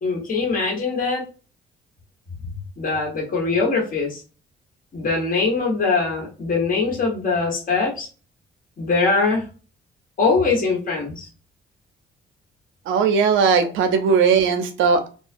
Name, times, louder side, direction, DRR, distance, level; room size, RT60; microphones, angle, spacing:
voice 1, 0.0-1.2 2.8-4.2 4.9-8.1 8.8-9.4 10.2-11.3, left 4 dB, 45° left, -2 dB, 1.1 m, -22 dB
voice 2, 12.9-15.1, right 5 dB, 75° right, 6 dB, 0.5 m, -18 dB
2.3 x 2.2 x 2.5 m, 0.35 s
cardioid pair, 90°, 20 cm